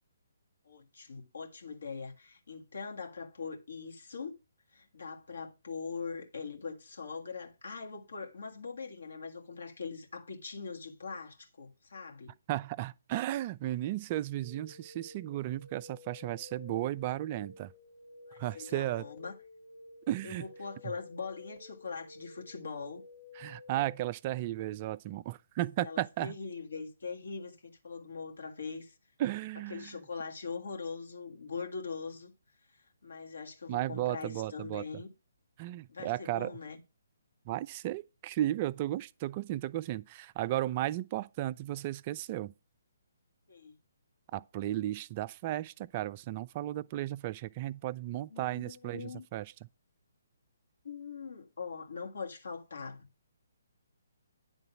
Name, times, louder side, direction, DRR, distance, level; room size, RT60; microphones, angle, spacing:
voice 1, 0.7-4.3 4.7-12.3 18.3-19.3 20.2-23.0 25.8-28.9 29.7-32.3 32.7-35.1 35.9-36.8 43.5-43.8 48.3-49.3 50.8-53.1, left 5 dB, 65° left, 1.9 m, -42 dB
voice 2, 12.5-17.7 18.4-19.0 20.1-20.5 23.4-26.4 29.2-29.9 33.7-34.9 35.6-36.5 37.5-42.5 44.3-49.5, right 14 dB, 30° right, 0.3 m, -34 dB
sound 1, 14.4-24.0, left 3 dB, 40° left, 2.0 m, -53 dB
9.9 x 3.9 x 6.1 m
figure-of-eight pair, 135°, 0 cm